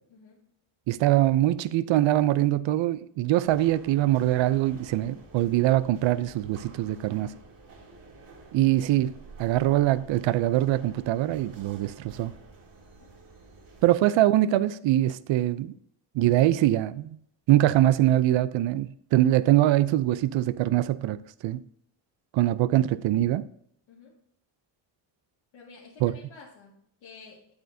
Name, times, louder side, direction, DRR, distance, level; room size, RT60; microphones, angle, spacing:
voice 1, 0.1-0.5 13.0-13.3 13.9-14.0 23.9-24.2 25.5-27.5, left 4 dB, 75° left, 2.2 m, -51 dB
voice 2, 0.9-7.3 8.5-9.1 9.4-12.3 13.8-15.7 16.1-17.2 17.5-21.6 22.3-23.5 26.0-26.1, right 14 dB, 70° right, 0.6 m, -23 dB
sound 1, 3.4-13.9, right 3 dB, 45° right, 2.2 m, -50 dB
8.5 x 8.2 x 2.7 m
cardioid pair, 105°, 47 cm